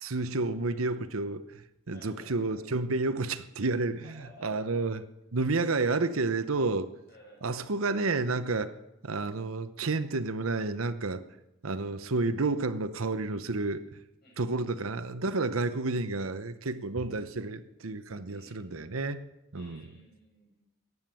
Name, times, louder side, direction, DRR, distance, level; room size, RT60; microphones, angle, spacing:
voice 1, 0.0-5.0 5.3-6.9 7.4-8.8 9.0-11.2 11.6-14.0 14.4-19.2 19.5-19.8, right 3 dB, 85° right, 11 dB, 0.9 m, -30 dB
voice 2, 1.9-2.7 4.0-4.7 7.1-7.7 14.2-14.7 18.3-18.7 19.5-20.7, left 1 dB, 50° left, -2 dB, 6.9 m, -55 dB
14.5 x 9.7 x 7.6 m, 0.91 s
head